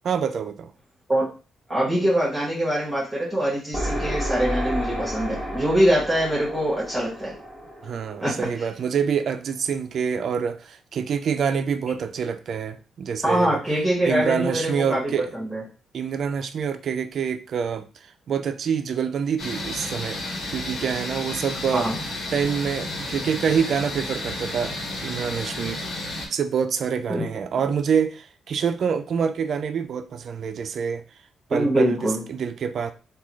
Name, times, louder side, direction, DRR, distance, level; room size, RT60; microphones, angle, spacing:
voice 1, 0.0-0.7 7.8-13.6 14.0-15.3 15.9-17.9 18.3-20.2 20.5-21.9 22.3-25.8 26.3-31.0 31.5-32.9, right 7 dB, 60° right, 0.4 m, -26 dB
voice 2, 1.7-7.3 8.2-8.6 13.2-15.6 21.7-21.9 27.1-27.2 31.5-32.2, equal, 15° right, 1.7 m, -23 dB
sound 1, 3.7-9.3, equal, 5° left, 1.6 m, -31 dB
sound 2, 19.4-26.3, left 2 dB, 60° left, 1.1 m, -32 dB
3.5 x 2.3 x 3.1 m
cardioid pair, 85°, 0 cm